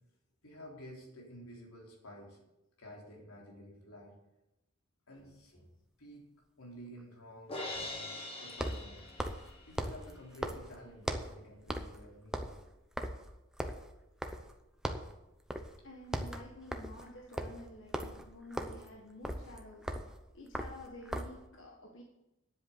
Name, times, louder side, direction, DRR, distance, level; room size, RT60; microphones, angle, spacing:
voice 1, 0.4-2.4 2.8-4.2 5.1-5.7 6.0-6.3 6.6-9.1 9.7-12.5, equal, 85° left, -1 dB, 3.7 m, -51 dB
sound 1, 5.2-5.3 8.5-11.4 11.7-12.0 12.3-14.6 14.8-15.2 15.5-15.8 16.0-21.4, equal, 5° right, 0.7 m, -39 dB
Crash cymbal, 7.5-9.8, left 2 dB, 25° left, 1.8 m, -42 dB
voice 2, 15.8-22.0, left 1 dB, 60° left, 0 dB, 1.4 m, -51 dB
10.0 x 7.9 x 8.0 m, 0.92 s
head